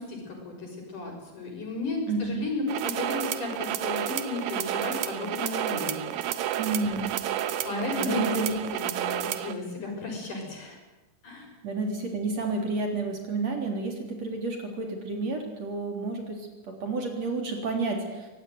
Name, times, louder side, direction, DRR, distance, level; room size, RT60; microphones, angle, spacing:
voice 1, 0.0-6.1 7.6-8.3 8.8-10.8 11.2-11.5, left 3 dB, 60° left, 2 dB, 7.7 m, -34 dB
voice 2, 2.1-2.4 6.6-7.2 8.0-8.5 9.0-9.1 11.6-18.3, right 3 dB, 45° right, 2 dB, 4.6 m, -30 dB
sound 1, 2.7-9.5, right 11 dB, 75° right, 2.9 m, -30 dB
24.0 x 19.5 x 9.6 m, 1.1 s
omnidirectional pair, 4.2 m